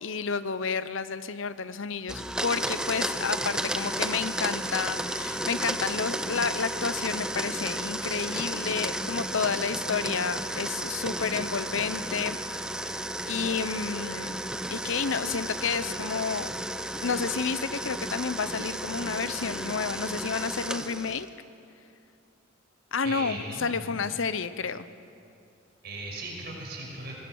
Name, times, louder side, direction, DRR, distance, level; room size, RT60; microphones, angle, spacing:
voice 1, 0.0-12.4 13.2-14.4 14.7-16.5 17.0-21.3 22.9-24.9, left 5 dB, 70° left, 14 dB, 0.7 m, -30 dB
Domestic sounds home sounds, 2.1-21.3, right 1 dB, 5° right, 0.6 m, -33 dB
voice 2, 23.0-23.8 25.8-27.2, right 2 dB, 50° right, -1 dB, 5.8 m, -38 dB
24.5 x 20.0 x 6.3 m, 2.5 s
head